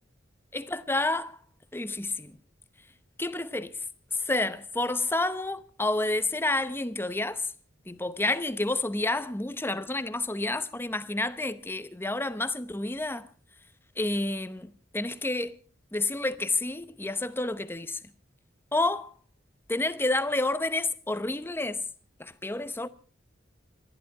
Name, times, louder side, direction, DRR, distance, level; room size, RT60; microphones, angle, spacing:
voice 1, 0.5-1.4 1.7-2.3 3.2-3.7 4.1-7.5 7.9-13.3 14.0-15.5 15.9-18.0 18.7-19.1 19.7-21.8 22.2-22.9, left 2 dB, 10° left, 0.8 m, -29 dB
27.0 x 11.0 x 4.8 m
head